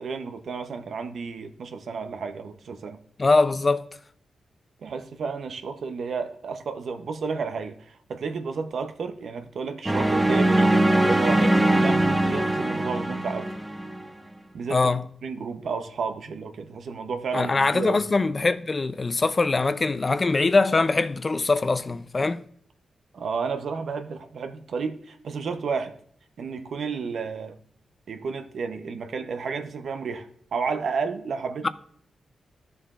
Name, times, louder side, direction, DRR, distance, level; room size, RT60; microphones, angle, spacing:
voice 1, 0.0-3.0 4.8-13.5 14.5-18.0 23.1-26.0 26.4-27.6 28.1-31.7, right 5 dB, 70° right, 0.8 m, -32 dB
voice 2, 3.2-3.9 14.7-15.0 17.3-22.4, left 3 dB, 35° left, 0.5 m, -22 dB
sound 1, 9.9-14.0, right 1 dB, 15° right, 0.9 m, -21 dB
13.0 x 7.0 x 2.5 m
cardioid pair, 85°, 0 cm